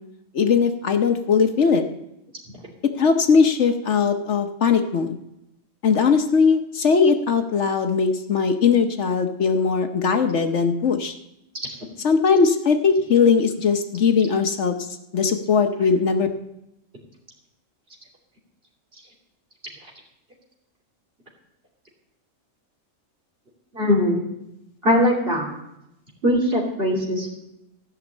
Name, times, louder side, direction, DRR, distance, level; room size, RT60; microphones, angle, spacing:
voice 1, 0.3-1.8 3.0-5.2 5.8-11.1 12.0-14.8 15.1-16.3, left 5 dB, 65° left, 6 dB, 1.2 m, -19 dB
voice 2, 23.7-24.3 24.8-25.5 26.2-27.4, left 1 dB, 45° right, -2 dB, 3.1 m, -21 dB
14.5 x 6.0 x 8.3 m, 0.85 s
omnidirectional pair, 1.4 m